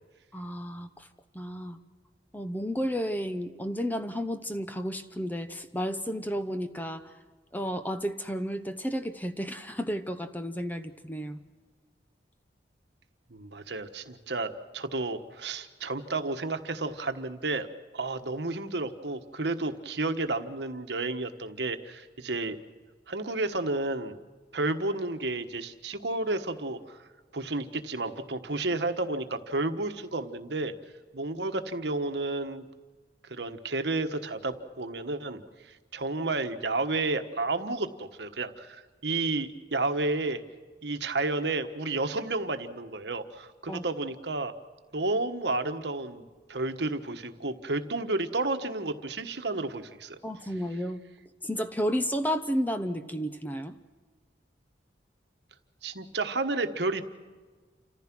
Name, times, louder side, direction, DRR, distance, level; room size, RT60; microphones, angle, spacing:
voice 1, 0.3-1.1 1.3-1.8 2.3-7.1 7.5-11.4 43.7-43.8 50.2-51.0 51.4-53.7, equal, 10° left, 9 dB, 0.8 m, -32 dB
voice 2, 13.3-17.7 17.9-22.6 23.1-24.2 24.5-27.0 27.3-30.7 31.1-32.6 33.2-40.4 40.8-44.5 44.9-50.2 55.8-57.0, right 2 dB, 65° right, 7 dB, 1.3 m, -31 dB
29.0 x 15.0 x 6.1 m, 1.4 s
head